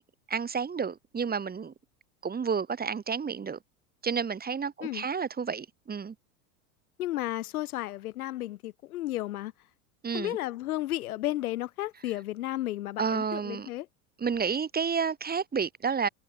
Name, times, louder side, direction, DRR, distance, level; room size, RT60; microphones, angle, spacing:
voice 1, 0.3-1.7 2.2-3.6 4.0-6.1 10.0-10.4 13.0-13.7 14.2-16.1, right 6 dB, 20° right, 4.0 m, -30 dB
voice 2, 7.0-9.5 10.1-13.9, left 15 dB, 80° left, 7.4 m, -33 dB
supercardioid pair, 110°, 43 cm